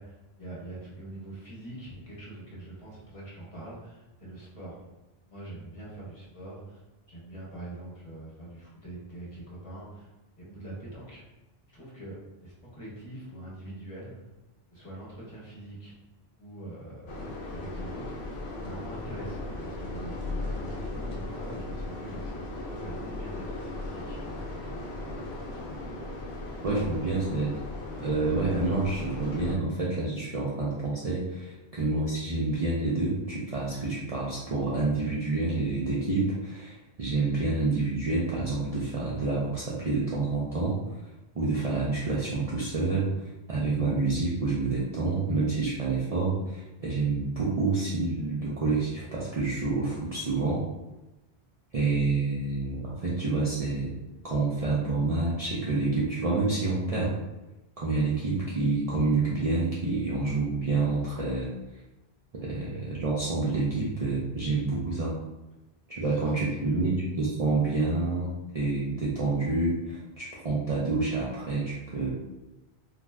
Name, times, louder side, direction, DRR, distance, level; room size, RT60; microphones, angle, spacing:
voice 1, 0.0-4.9 5.3-6.8 7.1-10.1 10.4-11.2 11.7-14.2 14.7-15.9 16.4-18.3 18.6-22.3 22.7-24.2 26.8-26.9 65.9-66.9, right 1 dB, 35° left, -6 dB, 0.9 m, -43 dB
sound 1, 17.1-29.6, left 2 dB, 85° left, 0.9 m, -37 dB
voice 2, 26.6-27.6 28.0-40.8 41.3-50.6 51.7-53.9 54.2-57.1 57.8-61.5 62.3-65.1 65.9-72.2, right 3 dB, 50° right, -6 dB, 0.5 m, -28 dB
2.5 x 2.3 x 3.1 m, 1.0 s
omnidirectional pair, 1.0 m